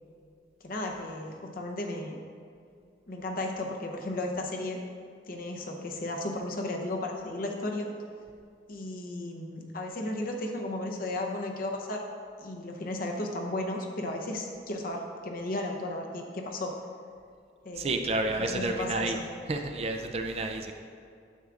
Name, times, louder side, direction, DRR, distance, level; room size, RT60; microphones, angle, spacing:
voice 1, 0.6-2.2 3.1-4.8 5.3-7.9 8.7-12.1 12.4-16.7 17.6-17.9 18.4-19.2, left 1 dB, 50° left, 2 dB, 0.8 m, -34 dB
voice 2, 17.8-19.2 19.5-20.7, right 2 dB, 35° right, 4 dB, 0.4 m, -30 dB
9.3 x 7.1 x 2.5 m, 2.3 s
head